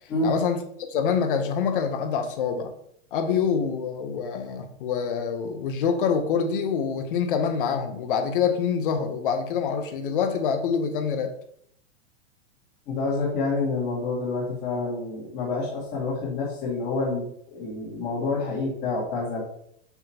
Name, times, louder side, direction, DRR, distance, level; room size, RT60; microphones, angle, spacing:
voice 1, 0.2-0.6 0.9-2.7 3.1-11.3, left 6 dB, 50° left, 7 dB, 0.9 m, -26 dB
voice 2, 12.9-17.2 17.5-19.4, left 3 dB, 30° left, -7 dB, 2.3 m, -28 dB
5.9 x 5.7 x 2.9 m, 0.68 s
supercardioid pair, 170°, 35 cm